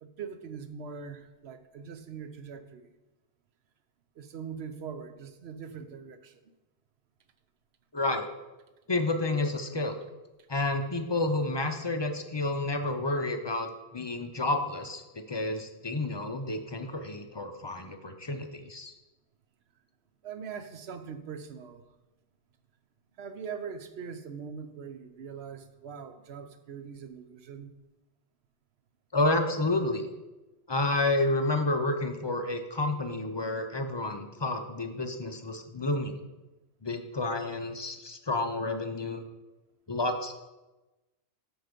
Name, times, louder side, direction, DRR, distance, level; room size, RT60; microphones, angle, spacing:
voice 1, 0.0-2.9 4.2-6.4 20.2-21.8 23.2-27.7, right 6 dB, 65° right, 9 dB, 0.9 m, -42 dB
voice 2, 7.9-8.3 8.9-9.9 10.5-13.7 13.9-15.0 15.3-18.9 29.1-30.1 30.7-36.2 36.8-39.2 39.9-40.3, left 2 dB, 35° left, 6 dB, 0.4 m, -30 dB
7.9 x 6.2 x 5.1 m, 1.1 s
omnidirectional pair, 1.2 m